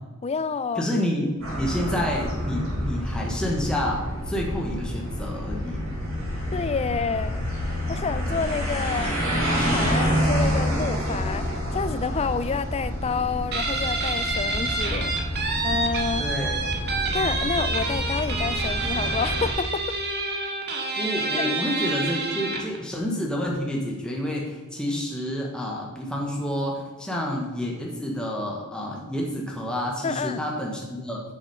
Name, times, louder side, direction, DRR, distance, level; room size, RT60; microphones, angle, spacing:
voice 1, 0.2-0.9 6.5-9.2 9.6-15.2 15.6-16.3 17.1-20.0 21.4-21.5 30.0-30.4, left 5 dB, 30° left, 14 dB, 0.4 m, -29 dB
voice 2, 0.7-1.3 1.6-5.8 16.2-16.6 21.0-31.2, left 1 dB, 5° left, -2 dB, 1.3 m, -29 dB
sound 1, 1.4-19.5, equal, 65° right, 3.2 m, -28 dB
Guitar, 13.5-22.8, right 3 dB, 50° right, 1.4 m, -28 dB
7.2 x 7.0 x 5.5 m, 1.3 s
head